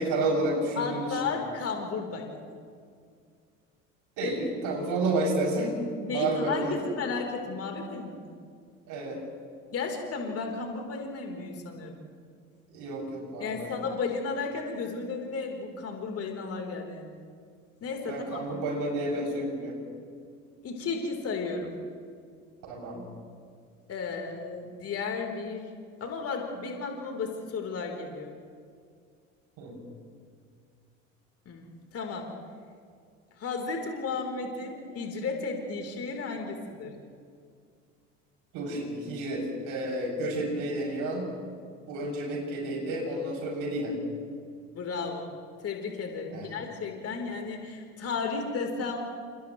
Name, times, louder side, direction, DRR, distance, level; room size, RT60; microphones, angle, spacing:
voice 1, 0.0-1.2 4.2-5.8 6.1-6.7 8.9-9.2 12.7-13.7 18.1-19.8 22.7-23.0 29.6-29.7 38.5-41.3 41.9-44.0 46.3-46.5, right 2 dB, 55° right, -2 dB, 7.2 m, -30 dB
voice 2, 0.8-2.5 4.2-4.4 6.0-8.3 9.7-12.0 13.4-17.2 17.8-18.4 20.6-21.7 23.9-25.6 26.0-28.3 31.5-32.3 33.4-36.9 44.7-45.3 45.6-49.0, left 4 dB, 40° left, 2 dB, 3.8 m, -34 dB
30.0 x 29.0 x 3.2 m, 2.2 s
figure-of-eight pair, 65°, 39 cm